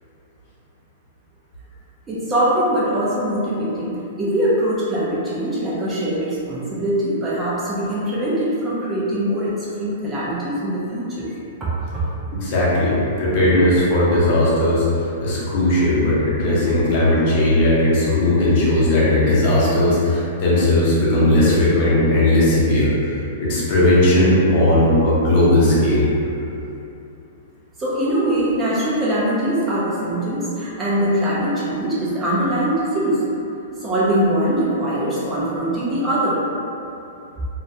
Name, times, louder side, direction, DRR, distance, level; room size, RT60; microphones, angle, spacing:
voice 1, 2.1-12.0 27.8-33.3 33.8-36.5, right 1 dB, 15° right, -9 dB, 0.4 m, -22 dB
voice 2, 12.3-14.9 15.2-23.1 23.4-26.0, left 1 dB, 45° left, -7 dB, 0.7 m, -17 dB
2.2 x 2.1 x 2.6 m, 2.8 s
hypercardioid pair, 160°, 0 cm